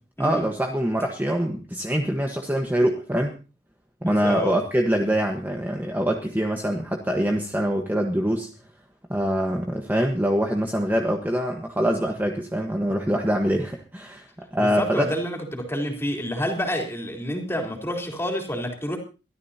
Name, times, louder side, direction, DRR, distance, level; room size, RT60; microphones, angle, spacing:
voice 1, 0.2-3.3 4.0-8.5 9.1-14.3 14.5-15.1, equal, 10° right, 2 dB, 1.3 m, -24 dB
voice 2, 4.0-4.6 14.6-19.0, equal, 15° left, 2 dB, 3.7 m, -28 dB
23.5 x 13.5 x 2.9 m, 0.32 s
head